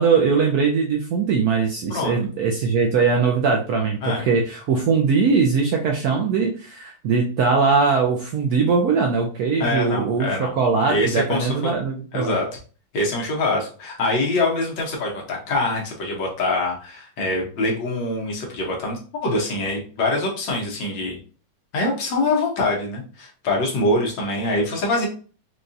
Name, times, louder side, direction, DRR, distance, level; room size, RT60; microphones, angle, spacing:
voice 1, 0.0-12.4, right 5 dB, 70° right, 1 dB, 0.9 m, -21 dB
voice 2, 9.6-10.5 10.9-11.7 12.1-12.5 12.9-21.2 21.7-25.1, left 2 dB, 75° left, -1 dB, 1.7 m, -24 dB
4.8 x 2.3 x 2.6 m, 0.38 s
omnidirectional pair, 2.1 m